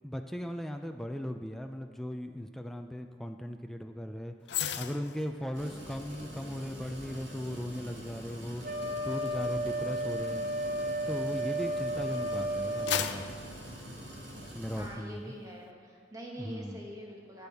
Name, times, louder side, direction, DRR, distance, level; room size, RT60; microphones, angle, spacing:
voice 1, 0.0-4.3 4.8-8.6 9.0-10.5 11.1-13.4 14.5-15.3 16.4-16.9, equal, ahead, 5 dB, 0.3 m, -38 dB
sound 1, 4.5-11.9 12.3-14.7 15.1-15.3, left 9 dB, 65° left, 0.4 m, -40 dB
sound 2, 5.5-14.9, right 1 dB, 80° right, 2.3 m, -45 dB
Wind instrument woodwind instrument, 8.6-13.1, right 1 dB, 45° right, 0.7 m, -33 dB
voice 2, 14.8-17.5, equal, 20° right, -2 dB, 1.5 m, -44 dB
12.0 x 8.5 x 3.5 m, 2.2 s
head